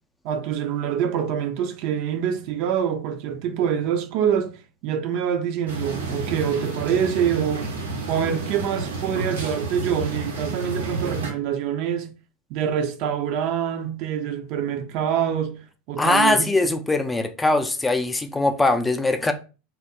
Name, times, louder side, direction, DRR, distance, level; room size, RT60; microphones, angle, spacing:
voice 1, 0.2-7.7 8.1-12.1 12.5-15.6 15.9-16.5, right 8 dB, 55° right, 0.5 m, -25 dB
sound 1, 5.7-11.3, right 3 dB, 90° right, 0.9 m, -30 dB
voice 2, 16.0-19.3, left 2 dB, 10° left, 0.4 m, -21 dB
2.8 x 2.1 x 3.6 m
hypercardioid pair, 85°, 0 cm